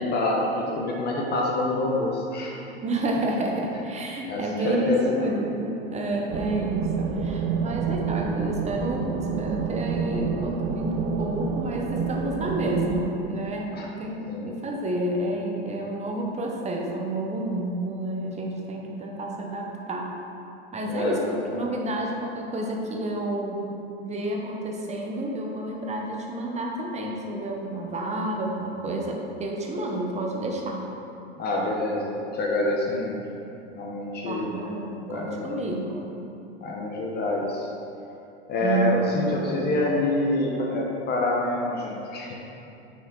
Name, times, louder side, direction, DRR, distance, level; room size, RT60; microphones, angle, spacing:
voice 1, 0.0-2.6 4.3-5.3 13.7-13.9 14.3-14.5 20.9-21.7 31.4-33.2 33.7-34.5 35.1-35.6 36.6-37.7 38.5-42.3, left 2 dB, 30° left, -2 dB, 0.9 m, -27 dB
voice 2, 2.8-20.1 20.7-23.7 24.0-30.9 34.3-36.1 38.6-39.1, right 1 dB, 20° right, 0 dB, 0.9 m, -30 dB
sound 1, 6.3-13.0, right 6 dB, 40° right, 0.5 m, -28 dB
6.2 x 4.3 x 3.9 m, 2.8 s
hypercardioid pair, 105°, 32 cm